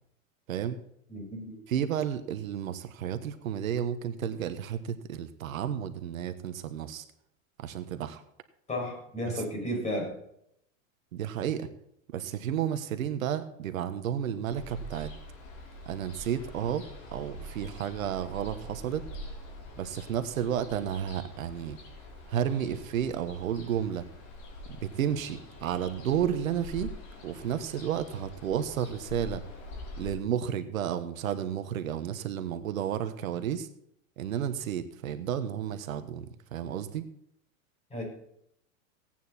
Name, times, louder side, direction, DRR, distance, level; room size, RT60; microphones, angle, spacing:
voice 1, 1.1-1.6 8.7-10.2 37.9-38.0, equal, 15° left, 0 dB, 6.5 m, -33 dB
voice 2, 1.7-7.0 7.6-8.2 11.1-11.7 12.1-15.1 15.9-16.8 17.1-19.0 19.8-21.8 22.3-24.1 24.7-26.9 27.2-29.4 30.0-33.7 34.2-36.2 36.5-37.0, right 9 dB, 85° right, 10 dB, 1.4 m, -32 dB
Ocean, 14.5-30.1, left 1 dB, 45° left, 4.4 m, -45 dB
17.5 x 9.3 x 4.4 m, 0.72 s
hypercardioid pair, 125°, 40 cm